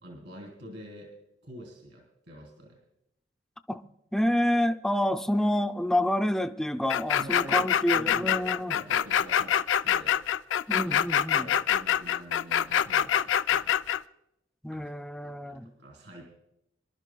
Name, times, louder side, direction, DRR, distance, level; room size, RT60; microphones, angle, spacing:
voice 1, 0.0-1.1 1.4-2.8 7.2-9.6 9.8-10.2 10.8-11.0 11.3-13.7 14.7-14.9 15.2-16.3, equal, 70° right, 3.3 m, -45 dB
voice 2, 4.1-8.8 10.7-11.5 14.6-15.7, left 1 dB, 5° left, 0.4 m, -28 dB
sound 1, 6.9-14.0, left 9 dB, 90° left, 0.4 m, -25 dB
26.0 x 12.0 x 2.2 m
head